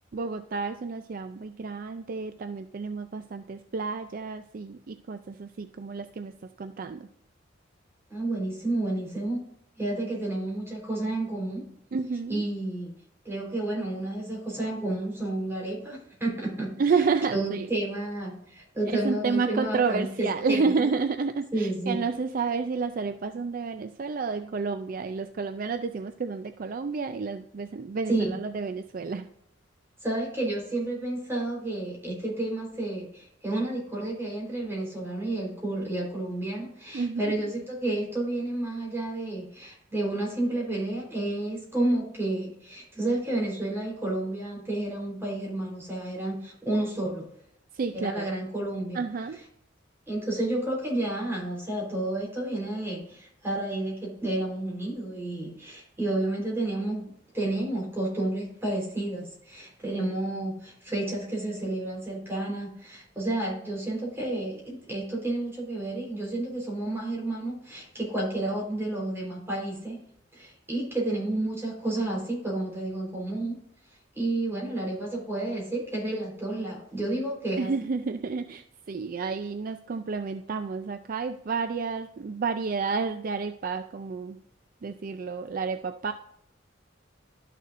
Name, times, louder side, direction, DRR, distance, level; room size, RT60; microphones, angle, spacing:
voice 1, 0.1-7.1 11.9-12.4 16.8-17.7 18.9-29.3 36.9-37.3 47.7-48.3 48.9-49.4 77.6-84.4 84.8-86.1, right 4 dB, 50° right, 8 dB, 0.4 m, -30 dB
voice 2, 8.1-9.4 9.8-11.6 12.3-12.9 13.2-16.7 17.3-20.9 21.5-22.0 28.1-28.3 30.0-47.3 47.9-49.0 50.1-70.0 70.3-73.6 74.2-77.7, right 2 dB, 15° right, -3 dB, 3.8 m, -31 dB
12.5 x 6.6 x 2.5 m, 0.73 s
head